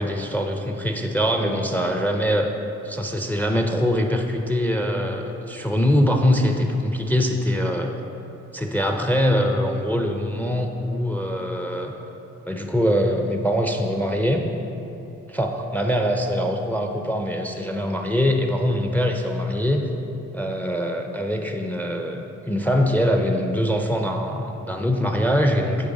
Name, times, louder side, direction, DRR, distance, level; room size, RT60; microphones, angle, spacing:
voice 1, 0.0-2.5 2.8-7.9 8.5-11.9 12.5-14.4 15.3-19.8 20.3-25.9, equal, 5° left, 4 dB, 0.4 m, -23 dB
9.1 x 3.3 x 3.8 m, 2.9 s
cardioid pair, 90°, 30 cm